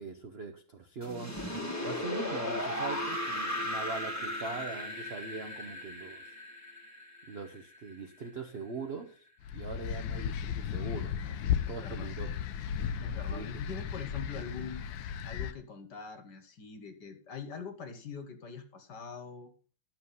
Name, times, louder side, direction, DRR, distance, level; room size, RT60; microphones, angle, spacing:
voice 1, 0.0-1.4 1.8-6.2 7.3-9.2 9.5-11.4 11.7-12.3 13.3-13.7, right 4 dB, 55° right, 6 dB, 0.6 m, -41 dB
sound 1, 1.0-7.9, left 1 dB, 10° left, 1.5 m, -36 dB
sound 2, 9.4-15.5, left 8 dB, 70° left, 1.3 m, -35 dB
voice 2, 11.7-12.1 13.0-14.8 15.2-19.5, left 5 dB, 55° left, 8 dB, 1.8 m, -43 dB
12.0 x 7.2 x 5.5 m, 0.40 s
omnidirectional pair, 2.4 m